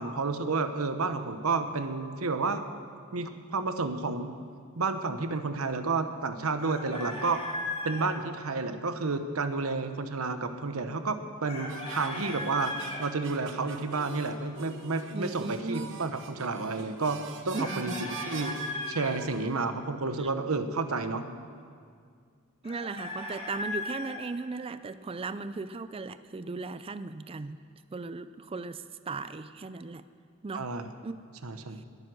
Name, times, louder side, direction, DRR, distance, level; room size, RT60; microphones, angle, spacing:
voice 1, 0.0-2.6 3.1-4.3 4.8-7.4 7.8-12.7 13.0-17.9 18.3-18.6 18.9-21.2 30.5-30.9 31.4-31.8, right 3 dB, 85° right, 9 dB, 1.0 m, -31 dB
Chicken rooster, 6.6-8.1 11.5-13.0 17.5-19.1 22.6-24.1, left 2 dB, 30° left, 3.2 m, -37 dB
sound 1, 11.7-19.6, right 5 dB, 60° right, 1.0 m, -45 dB
voice 2, 15.1-16.0 17.5-18.0 20.2-20.3 22.6-27.6 27.9-30.0 30.4-30.7 31.0-31.2 31.8-31.9, right 3 dB, 25° right, 12 dB, 0.4 m, -37 dB
21.0 x 9.5 x 6.3 m, 2.1 s
head